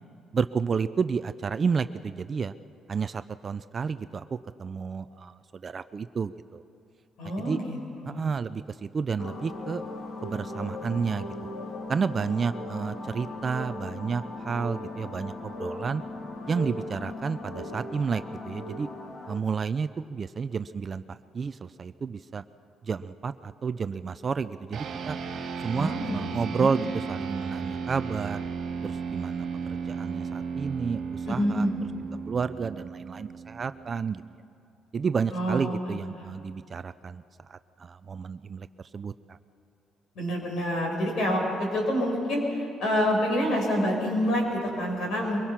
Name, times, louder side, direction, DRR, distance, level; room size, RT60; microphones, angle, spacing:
voice 1, 0.3-2.5 2.9-6.6 7.5-7.6 8.1-9.8 10.2-11.3 11.9-16.0 16.5-18.9 19.3-22.4 22.8-25.2 25.6-26.8 27.1-28.5 28.8-31.7 32.3-34.2 34.9-39.4, right 5 dB, 25° right, 12 dB, 0.4 m, -31 dB
voice 2, 7.2-8.2 25.7-26.3 26.6-26.7 31.3-31.7 35.3-36.3 40.1-45.4, equal, 60° left, 0 dB, 5.9 m, -27 dB
sound 1, 9.2-19.4, left 2 dB, 40° left, 1.7 m, -38 dB
sound 2, 24.7-34.4, right 5 dB, 50° right, 2.2 m, -35 dB
23.0 x 22.0 x 5.8 m, 2.6 s
cardioid pair, 175°, 0 cm